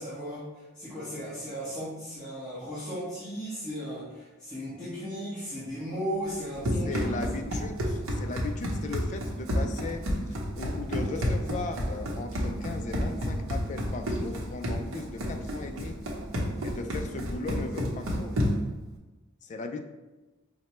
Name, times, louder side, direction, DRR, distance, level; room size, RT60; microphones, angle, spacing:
voice 1, 0.0-7.5, equal, 5° left, -14 dB, 1.0 m, -36 dB
Run, 6.3-18.8, equal, 75° right, 0.8 m, -30 dB
voice 2, 6.8-10.0 10.5-16.0 16.6-18.3 19.4-19.8, left 3 dB, 35° left, 6 dB, 0.3 m, -37 dB
5.2 x 2.1 x 3.0 m, 1.2 s
head